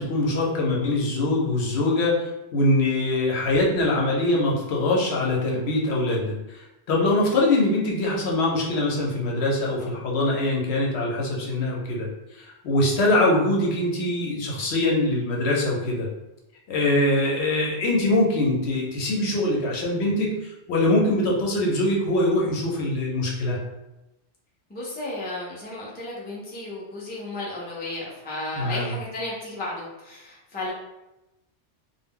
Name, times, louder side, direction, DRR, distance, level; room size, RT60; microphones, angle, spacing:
voice 1, 0.0-16.1 16.7-23.6 28.5-28.9, left 2 dB, 75° left, -2 dB, 0.9 m, -23 dB
voice 2, 24.7-30.7, left 2 dB, 15° left, -5 dB, 0.3 m, -33 dB
2.2 x 2.0 x 3.5 m, 0.94 s
omnidirectional pair, 1.2 m